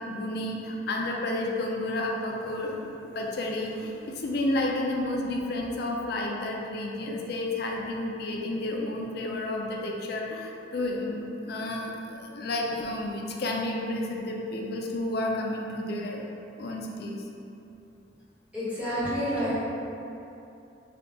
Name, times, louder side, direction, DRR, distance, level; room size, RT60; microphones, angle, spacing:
voice 1, 0.0-16.2 16.6-17.2, left 1 dB, 60° left, 0 dB, 0.4 m, -31 dB
voice 2, 18.5-19.5, equal, 10° right, -12 dB, 1.1 m, -29 dB
3.6 x 2.2 x 3.6 m, 2.8 s
head